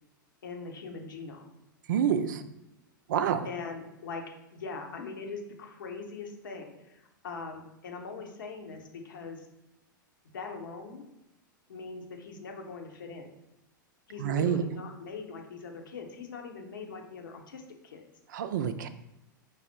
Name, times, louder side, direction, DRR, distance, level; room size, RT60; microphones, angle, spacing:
voice 1, 0.4-1.5 3.4-4.2 4.5-9.5 10.3-11.1 11.7-13.3 14.1-18.0, left 4 dB, 70° left, 2 dB, 0.9 m, -41 dB
voice 2, 1.9-2.4 3.1-3.5 14.2-14.6 18.3-18.9, right 8 dB, 65° right, 11 dB, 0.4 m, -27 dB
4.8 x 2.0 x 4.4 m, 0.92 s
figure-of-eight pair, 100°, 11 cm